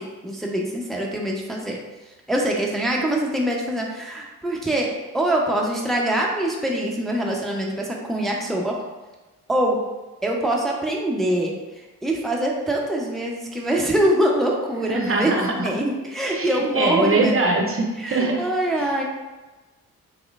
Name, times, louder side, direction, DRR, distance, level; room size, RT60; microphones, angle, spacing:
voice 1, 0.0-1.8 2.3-4.9 5.1-8.8 9.5-9.8 10.2-15.3 15.6-17.4 18.0-19.0, right 1 dB, ahead, -1 dB, 0.6 m, -24 dB
voice 2, 14.9-15.7 16.3-18.4 18.7-18.9, right 2 dB, 35° right, 1 dB, 0.6 m, -22 dB
3.1 x 3.0 x 2.4 m, 1.2 s
hypercardioid pair, 45°, 38 cm